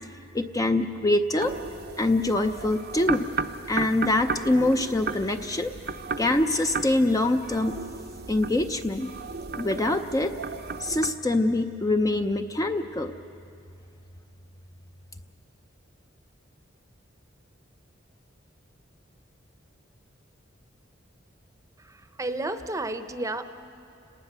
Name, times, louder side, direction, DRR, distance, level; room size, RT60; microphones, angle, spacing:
voice 1, 0.3-1.5 2.0-3.3 3.7-5.7 6.2-7.7 8.3-9.1 9.6-10.3 10.8-13.1, left 2 dB, 20° left, 6 dB, 0.6 m, -24 dB
sound 1, 1.4-11.1, right 4 dB, 55° right, 0.7 m, -35 dB
voice 2, 21.8-23.4, right 2 dB, 15° right, 9 dB, 0.8 m, -32 dB
30.0 x 18.5 x 6.8 m, 2.6 s
head